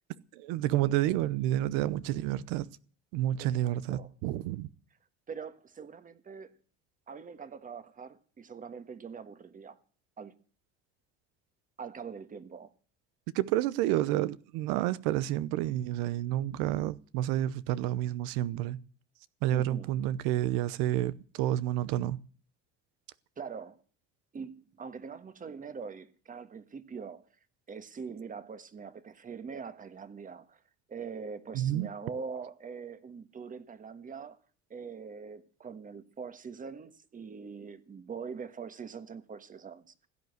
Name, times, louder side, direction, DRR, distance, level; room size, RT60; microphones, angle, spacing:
voice 1, 0.3-2.7 3.1-4.7 13.3-18.8 19.4-22.2 31.5-31.9, right 13 dB, 90° right, 0.9 m, -29 dB
voice 2, 3.4-4.1 5.3-6.6 7.1-9.8 10.2-10.3 11.8-12.7 19.5-19.9 23.4-23.8 24.3-27.3 27.7-30.6 30.9-34.4 34.7-40.1, right 5 dB, 30° right, 1.5 m, -43 dB
16.5 x 9.6 x 8.0 m
cardioid pair, 115°, 29 cm